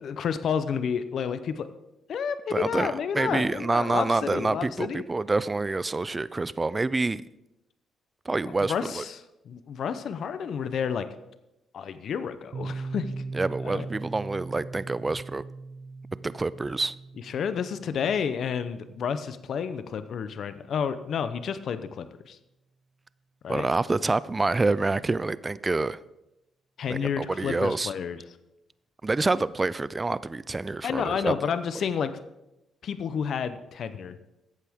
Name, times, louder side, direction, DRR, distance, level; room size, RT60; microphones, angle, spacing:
voice 1, 0.0-1.7 2.1-5.0 8.7-11.1 11.7-13.1 13.7-13.9 17.3-22.4 23.4-23.7 26.8-28.2 30.8-32.1 32.8-34.2, left 7 dB, 60° left, 12 dB, 0.7 m, -30 dB
voice 2, 2.5-7.2 8.3-9.0 13.3-15.4 16.2-16.9 23.5-26.0 26.9-27.9 29.0-31.5, right 3 dB, 20° right, 18 dB, 0.4 m, -27 dB
Piano, 12.5-20.0, right 3 dB, 50° right, 1.0 m, -40 dB
14.0 x 8.2 x 3.6 m, 0.93 s
cardioid pair, 90°, 0 cm